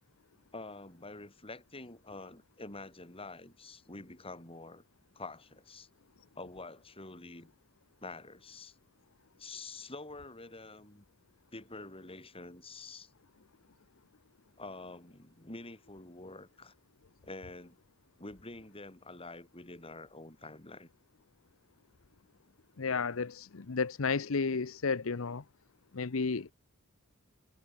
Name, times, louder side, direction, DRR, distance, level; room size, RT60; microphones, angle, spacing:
voice 1, 0.5-4.8 5.1-5.9 6.3-7.5 8.0-8.7 9.4-11.0 11.5-13.1 14.6-16.7 17.2-17.8 18.2-20.9, left 2 dB, 25° left, 4.7 m, -47 dB
voice 2, 22.8-25.4 25.9-26.5, left 4 dB, 70° left, 0.8 m, -32 dB
head